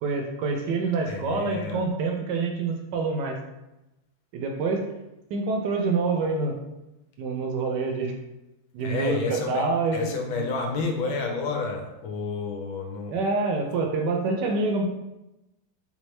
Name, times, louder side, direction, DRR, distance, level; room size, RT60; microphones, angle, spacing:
voice 1, 0.0-3.4 4.3-4.8 5.3-6.5 7.2-8.1 8.7-10.1 10.3-10.4 13.1-14.8, right 3 dB, 70° right, 2 dB, 1.1 m, -26 dB
voice 2, 1.0-1.9 8.8-13.3, left 3 dB, 90° left, 2 dB, 1.5 m, -30 dB
3.5 x 3.5 x 3.1 m, 0.95 s
omnidirectional pair, 2.2 m